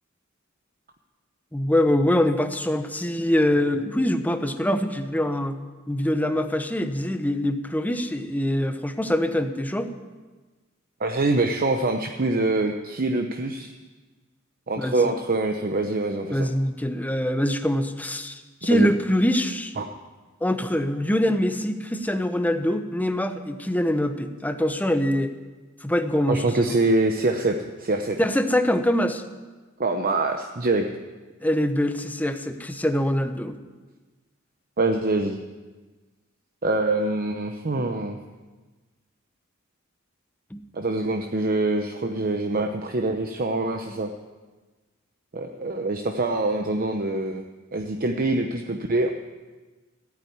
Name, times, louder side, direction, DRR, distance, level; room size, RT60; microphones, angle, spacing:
voice 1, 1.5-5.6 5.9-9.9 14.8-14.9 16.3-19.7 20.4-25.3 25.8-26.7 28.2-29.2 31.4-33.6 40.5-40.6, left 1 dB, 10° left, 8 dB, 0.9 m, -24 dB
voice 2, 11.0-13.7 14.7-16.5 18.7-18.9 19.8-19.9 26.3-28.2 29.8-30.8 34.8-35.4 36.6-38.2 40.7-44.1 45.3-47.4 47.7-49.1, right 2 dB, 45° right, 4 dB, 0.8 m, -24 dB
15.0 x 9.0 x 9.4 m, 1.3 s
head